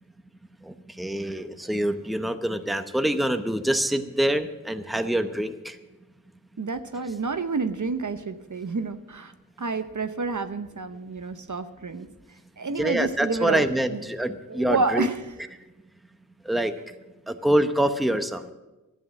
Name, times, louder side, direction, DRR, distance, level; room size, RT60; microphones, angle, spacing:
voice 1, 0.7-5.8 12.8-15.1 16.5-16.7 17.3-18.5, right 1 dB, ahead, 8 dB, 0.8 m, -25 dB
voice 2, 6.6-9.3 9.6-12.1 12.6-14.0 14.5-15.3, right 4 dB, 55° right, 10 dB, 0.8 m, -29 dB
13.0 x 8.5 x 7.4 m, 1.1 s
wide cardioid pair, 45°, 35 cm